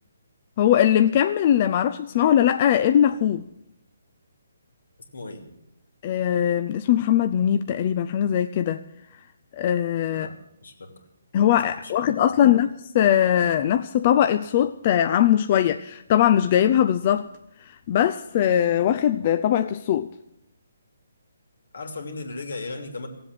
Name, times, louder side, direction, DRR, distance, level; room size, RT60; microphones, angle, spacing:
voice 1, 0.6-3.4 6.0-8.8 9.5-10.3 11.3-12.7 12.9-17.3 17.9-20.1, left 10 dB, 35° left, 9 dB, 0.5 m, -20 dB
voice 2, 5.1-5.4 10.1-11.0 11.8-12.5 21.7-23.1, left 3 dB, 75° left, 5 dB, 2.8 m, -37 dB
16.5 x 7.8 x 9.8 m, 0.83 s
hypercardioid pair, 150°, 0 cm